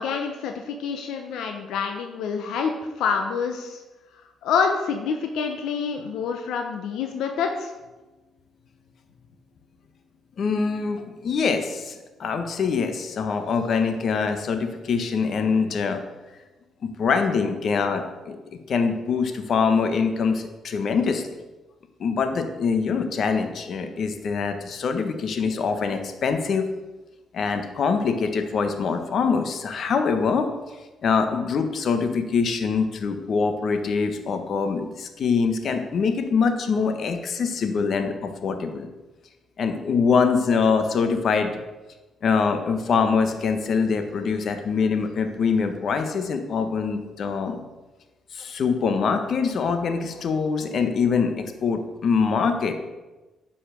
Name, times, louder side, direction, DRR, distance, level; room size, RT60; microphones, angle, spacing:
voice 1, 0.0-2.7 3.0-3.8 4.4-7.7, left 6 dB, 85° left, 4 dB, 0.9 m, -27 dB
voice 2, 10.4-16.0 16.8-18.4 18.7-21.2 22.0-26.6 27.3-30.5 31.0-38.9 39.6-41.5 42.2-47.6 48.3-52.7, left 5 dB, 60° left, 7 dB, 1.3 m, -24 dB
10.0 x 5.7 x 6.9 m, 1.1 s
cardioid pair, 90°, 0 cm